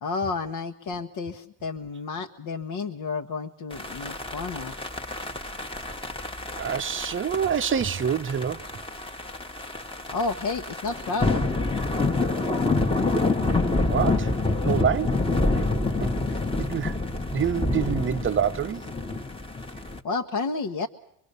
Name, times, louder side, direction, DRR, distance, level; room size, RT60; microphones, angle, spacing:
voice 1, 0.0-4.7 10.1-11.4 20.0-20.9, left 4 dB, 45° left, 1.3 m, -31 dB
sound 1, 3.7-20.0, left 2 dB, 10° left, 1.4 m, -27 dB
voice 2, 6.6-8.7 13.9-14.3 14.6-15.2 15.5-15.6 16.0-16.1 16.6-17.0 17.3-18.9, right 8 dB, 25° right, 0.9 m, -26 dB
24.5 x 22.5 x 6.8 m
supercardioid pair, 105°, 49 cm